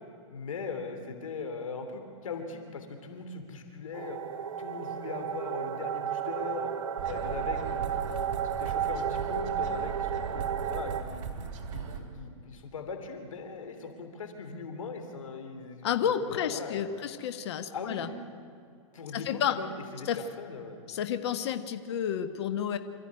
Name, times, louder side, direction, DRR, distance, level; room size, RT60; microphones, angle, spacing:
voice 1, 0.3-4.2 4.6-6.7 7.0-8.3 8.6-11.2 11.7-17.1 17.7-18.0 18.9-20.9, left 4 dB, 85° left, 6 dB, 3.2 m, -40 dB
sound 1, 3.9-11.0, right 9 dB, 85° right, 1.1 m, -33 dB
sound 2, 7.0-12.0, right 6 dB, 35° right, 3.0 m, -38 dB
voice 2, 15.8-18.1 19.1-19.6 20.0-20.2 20.9-22.8, left 9 dB, 55° left, 9 dB, 1.3 m, -31 dB
26.0 x 14.0 x 9.7 m, 2.4 s
hypercardioid pair, 155°, 17 cm